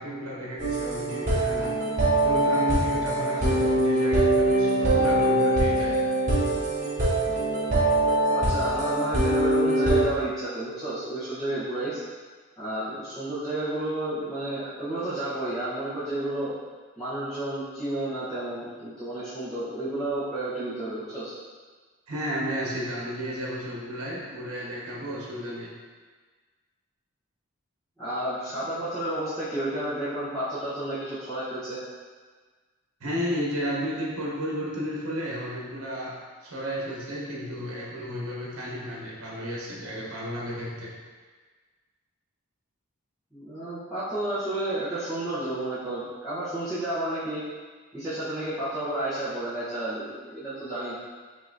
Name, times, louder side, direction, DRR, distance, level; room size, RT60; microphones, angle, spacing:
voice 1, 0.0-1.8 2.2-6.0 22.1-25.7 33.0-40.9, equal, 85° right, -5 dB, 1.1 m, -32 dB
sound 1, 0.6-10.0, right 1 dB, 35° right, 0.9 m, -23 dB
voice 2, 8.3-12.0 12.6-16.5 17.0-21.4 28.0-31.8 43.3-47.4 47.9-50.9, right 1 dB, ahead, -17 dB, 1.0 m, -31 dB
5.5 x 2.9 x 2.7 m, 1.5 s
head